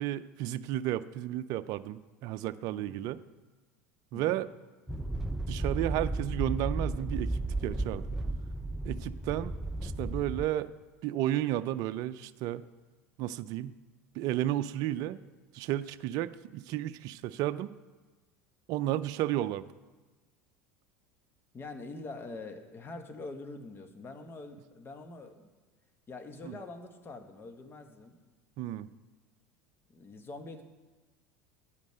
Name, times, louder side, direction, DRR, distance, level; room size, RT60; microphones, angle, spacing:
voice 1, 0.0-3.2 4.1-4.5 5.5-8.0 8.8-9.5 9.8-10.7 11.0-12.6 13.2-13.7 14.2-15.2 15.5-17.7 18.7-19.7 26.4-26.6 28.6-28.9, right 13 dB, 55° right, 13 dB, 0.5 m, -32 dB
voice 2, 2.7-3.0 4.1-4.4 21.5-25.5 26.1-28.2 29.9-30.6, left 3 dB, 30° left, 6 dB, 1.4 m, -44 dB
sound 1, 4.9-10.5, right 2 dB, 5° right, 0.5 m, -34 dB
10.0 x 5.3 x 7.8 m, 1.3 s
hypercardioid pair, 85°, 8 cm